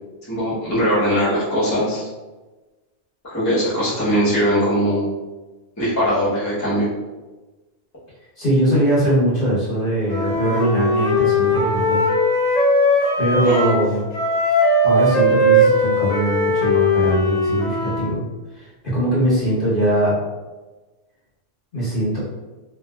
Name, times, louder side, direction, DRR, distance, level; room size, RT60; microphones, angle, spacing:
voice 1, 0.3-2.1 3.2-5.1 5.8-6.9 13.4-13.7, equal, 15° left, -10 dB, 0.8 m, -20 dB
voice 2, 8.4-12.0 13.2-14.0 14.8-18.2 18.5-18.7 18.9-20.1 21.7-22.2, right 1 dB, 45° left, -9 dB, 1.1 m, -21 dB
Wind instrument woodwind instrument, 10.1-13.9 14.1-18.1, left 1 dB, 70° left, 1.1 m, -19 dB
3.1 x 2.6 x 2.2 m, 1.2 s
omnidirectional pair, 1.4 m